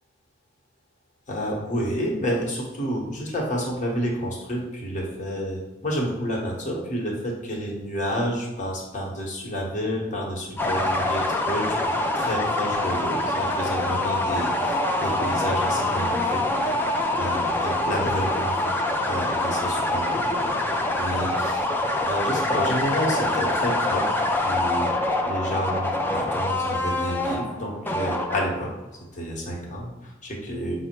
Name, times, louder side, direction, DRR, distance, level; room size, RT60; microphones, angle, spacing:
voice 1, 1.3-18.8 19.0-20.3 21.0-21.7 22.0-24.0 24.4-24.9 25.2-28.7 29.1-30.7, equal, 40° left, -2 dB, 1.1 m, -29 dB
sound 1, 10.6-28.7, left 1 dB, 10° left, 0.4 m, -25 dB
5.6 x 2.1 x 4.4 m, 1.0 s
head